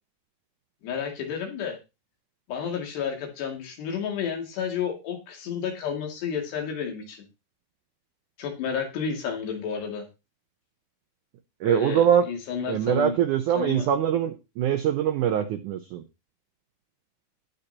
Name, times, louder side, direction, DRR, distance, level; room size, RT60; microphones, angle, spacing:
voice 1, 0.8-1.8 2.5-7.3 8.4-10.1 11.6-13.2 13.5-13.9, left 7 dB, 85° left, 2 dB, 4.6 m, -31 dB
voice 2, 11.6-12.2 12.7-16.0, right 9 dB, 90° right, 7 dB, 1.7 m, -23 dB
18.5 x 6.8 x 2.9 m, 0.27 s
omnidirectional pair, 4.7 m